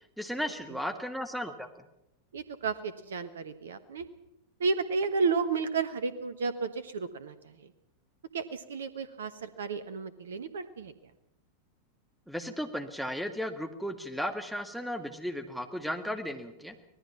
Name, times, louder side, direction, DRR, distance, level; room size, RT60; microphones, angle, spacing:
voice 1, 0.2-1.7 12.3-16.7, equal, ahead, 9 dB, 1.9 m, -35 dB
voice 2, 2.3-4.1 4.6-7.7 8.3-10.9, right 4 dB, 65° right, 14 dB, 1.2 m, -32 dB
25.0 x 19.0 x 5.9 m, 0.83 s
figure-of-eight pair, 90°, 0 cm